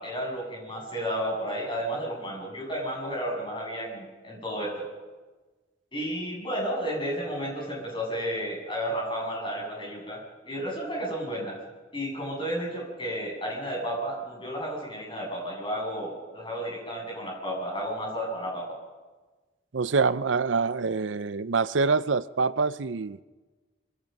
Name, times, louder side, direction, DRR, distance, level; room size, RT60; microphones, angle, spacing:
voice 1, 0.0-4.9 5.9-11.6 11.9-18.8, equal, 25° left, 7.6 m, -32 dB
voice 2, 19.7-23.2, right 4 dB, 90° right, 0.6 m, -25 dB
26.0 x 24.5 x 5.3 m
head